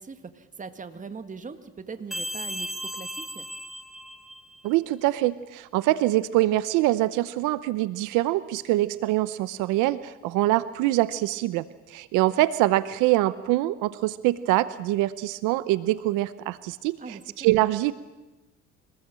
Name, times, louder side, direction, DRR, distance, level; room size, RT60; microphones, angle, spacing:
voice 1, 0.0-3.5 17.0-17.5, right 5 dB, 25° right, 9 dB, 1.9 m, -41 dB
sound 1, 2.1-4.7, equal, ahead, 2.0 m, -36 dB
voice 2, 4.6-17.9, right 16 dB, 85° right, 15 dB, 0.9 m, -24 dB
25.0 x 19.5 x 7.6 m, 1.1 s
cardioid pair, 95°, 30 cm